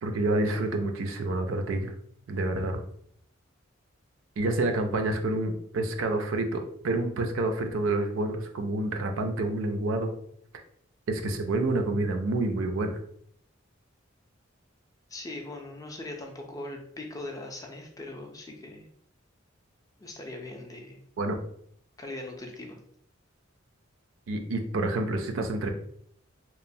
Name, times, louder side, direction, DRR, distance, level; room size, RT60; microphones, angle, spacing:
voice 1, 0.0-1.9 2.3-2.8 4.4-10.1 11.1-13.0 21.2-21.4 24.3-25.7, right 2 dB, 75° right, 5 dB, 0.4 m, -28 dB
voice 2, 15.1-18.9 20.0-21.0 22.0-22.8, left 2 dB, 15° left, 2 dB, 0.3 m, -40 dB
3.0 x 2.0 x 2.6 m, 0.67 s
head